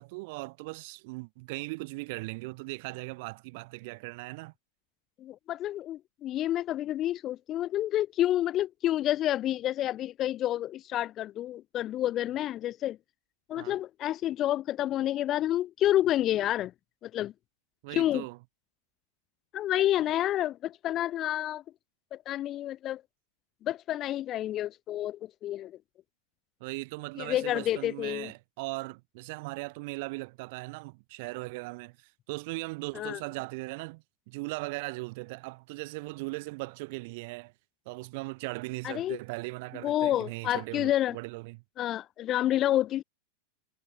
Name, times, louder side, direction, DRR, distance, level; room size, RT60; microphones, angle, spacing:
voice 1, 0.0-4.5 13.6-13.8 17.8-18.4 26.6-37.5 37.9-41.6, right 26 dB, 50° right, 0.7 m, -39 dB
voice 2, 5.2-13.0 13.5-16.7 17.0-17.3 17.9-18.3 19.5-21.6 22.1-23.0 23.6-25.8 27.2-28.3 32.9-33.2 38.8-39.2 39.8-41.2 41.8-43.0, left 13 dB, 30° left, 0.3 m, -29 dB
figure-of-eight pair, 90°, 0 cm